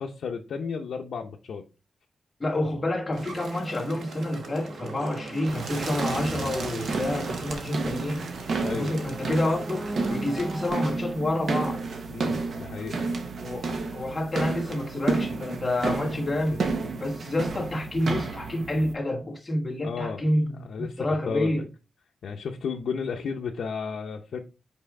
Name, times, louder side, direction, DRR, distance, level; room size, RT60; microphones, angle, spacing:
voice 1, 0.0-1.6 6.8-7.0 8.6-9.1 12.1-13.0 13.7-13.8 19.8-20.2 20.6-21.6 22.2-24.4, left 5 dB, 80° left, 0.6 m, -33 dB
voice 2, 2.4-8.3 8.7-11.8 13.4-16.6 17.0-20.6 21.0-21.7, left 1 dB, 20° left, 1.3 m, -28 dB
Bird, 3.1-10.7, right 4 dB, 75° right, 1.1 m, -39 dB
sound 1, 3.5-11.7, right 1 dB, 25° right, 0.6 m, -39 dB
sound 2, 5.5-18.9, right 3 dB, 55° right, 0.9 m, -32 dB
5.4 x 4.8 x 3.6 m
wide cardioid pair, 180°, 0 cm